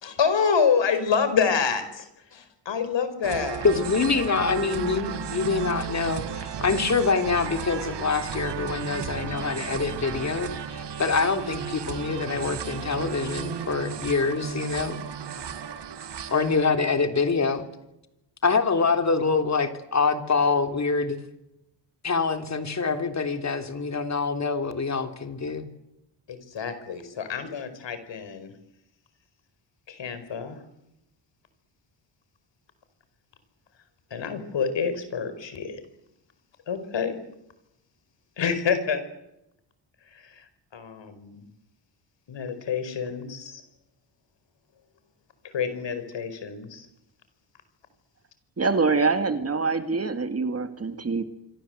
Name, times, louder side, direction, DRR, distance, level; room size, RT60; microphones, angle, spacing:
voice 1, 0.0-3.6 26.3-28.5 29.9-30.6 34.1-35.8 36.7-37.2 38.4-39.0 40.1-40.4 40.7-41.4 42.3-43.6 45.4-46.9, left 6 dB, 65° left, 10 dB, 4.9 m, -27 dB
sound 1, 3.2-16.6, right 7 dB, 60° right, 2.1 m, -34 dB
voice 2, 3.6-15.0 16.3-17.6 18.4-21.2 22.0-25.7, left 4 dB, 35° left, 7 dB, 3.3 m, -25 dB
voice 3, 48.6-51.2, right 4 dB, 30° right, 9 dB, 2.1 m, -25 dB
26.0 x 25.0 x 7.9 m, 0.86 s
wide cardioid pair, 135°, 47 cm